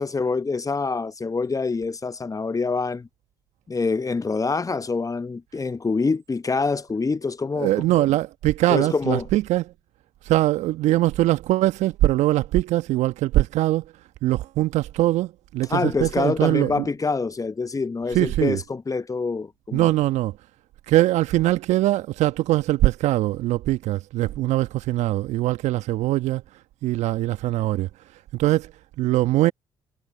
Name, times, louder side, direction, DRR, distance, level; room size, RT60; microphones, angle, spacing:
voice 1, 0.0-3.1 3.7-7.7 8.0-8.1 8.7-9.2 15.7-19.9, left 4 dB, 30° left, 1.0 m, -26 dB
voice 2, 7.6-9.7 10.2-13.9 14.2-16.9 18.1-18.6 19.7-20.4 20.9-26.4 26.8-27.9 28.3-29.5, right 16 dB, 65° right, 1.3 m, -22 dB
hypercardioid pair, 45°, 12 cm